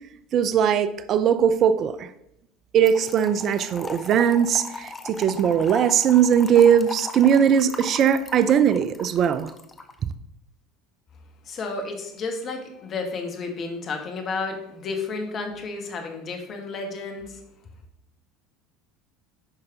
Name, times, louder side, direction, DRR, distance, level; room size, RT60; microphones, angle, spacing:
voice 1, 0.3-2.1 2.7-9.5, right 8 dB, 45° right, 0.5 m, -20 dB
Trickle dribble / Fill (with liquid), 2.9-9.9, left 3 dB, 20° left, 0.9 m, -38 dB
voice 2, 11.4-17.4, left 3 dB, 40° left, 1.8 m, -32 dB
9.7 x 5.5 x 3.9 m
hypercardioid pair, 75°, 0 cm